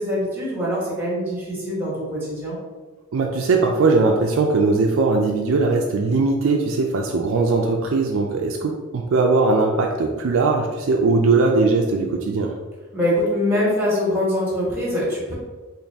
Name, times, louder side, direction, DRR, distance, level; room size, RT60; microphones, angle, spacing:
voice 1, 0.0-2.6 12.9-15.3, left 1 dB, 10° right, -5 dB, 1.3 m, -23 dB
voice 2, 3.1-12.5, right 3 dB, 70° right, 1 dB, 0.4 m, -20 dB
3.9 x 2.5 x 3.4 m, 1.3 s
head